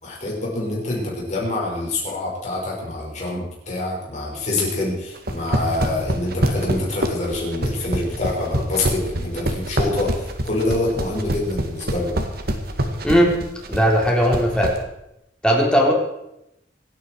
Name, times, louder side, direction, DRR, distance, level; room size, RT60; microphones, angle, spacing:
voice 1, 0.0-12.1, left 2 dB, 40° left, -4 dB, 5.8 m, -26 dB
sound 1, 5.2-14.8, right 1 dB, 60° right, 1.9 m, -24 dB
voice 2, 13.0-13.4 13.7-14.8 15.4-15.9, equal, 5° left, -1 dB, 3.6 m, -17 dB
26.0 x 9.1 x 4.7 m, 0.86 s
head